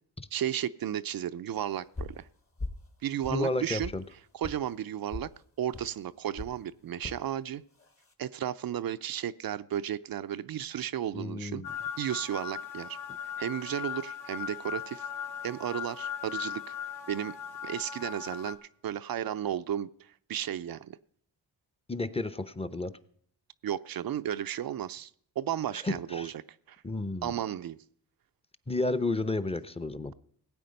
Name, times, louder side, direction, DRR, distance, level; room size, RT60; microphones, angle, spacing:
voice 1, 0.3-2.3 3.0-3.9 4.3-5.3 5.6-7.6 8.2-11.6 12.0-13.0 13.4-15.1 15.4-16.7 17.1-17.4 17.6-18.6 18.8-21.0 23.6-25.1 25.4-26.4 26.7-26.8 27.2-27.8, right 10 dB, 60° right, 13 dB, 0.6 m, -34 dB
sound 1, 2.0-2.2 2.6-2.9 3.2-4.0 4.4-4.6 5.1-5.3 5.7-5.9 6.4-6.6 7.0-7.2 7.8-8.1, left 2 dB, 35° left, 1.4 m, -39 dB
voice 2, 3.3-4.0 11.1-11.7 21.9-22.9 25.8-26.3 26.8-27.3 28.7-30.1, left 2 dB, 15° left, 11 dB, 0.8 m, -32 dB
sound 2, 11.6-18.5, left 8 dB, 65° left, 2.0 m, -38 dB
16.5 x 8.5 x 5.3 m, 0.64 s
cardioid pair, 60°, 41 cm